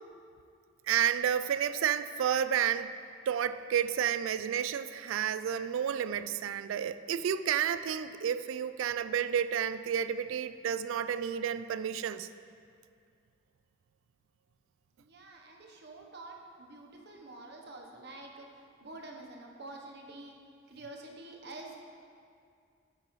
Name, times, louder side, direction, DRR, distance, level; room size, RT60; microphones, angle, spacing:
voice 1, 0.9-2.9 3.3-12.3, right 8 dB, 85° right, 13 dB, 0.3 m, -31 dB
voice 2, 15.0-18.5 18.8-20.3 20.7-21.8, right 2 dB, 55° right, 1 dB, 1.0 m, -47 dB
9.6 x 8.3 x 3.1 m, 2.3 s
head